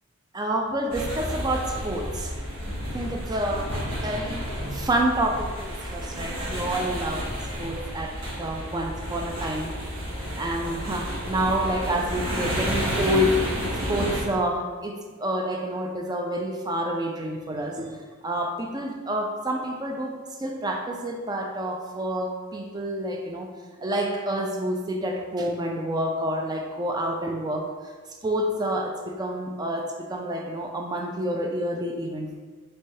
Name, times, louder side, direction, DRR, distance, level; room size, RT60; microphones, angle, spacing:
voice 1, 0.3-2.3 2.9-3.7 4.0-4.4 4.7-7.3 7.6-9.7 10.4-13.4 13.9-23.5 23.8-27.7 28.2-32.4, right 1 dB, 20° right, 2 dB, 0.3 m, -28 dB
sound 1, 0.9-14.2, equal, 70° right, 1.1 m, -31 dB
4.4 x 3.2 x 2.7 m, 1.4 s
head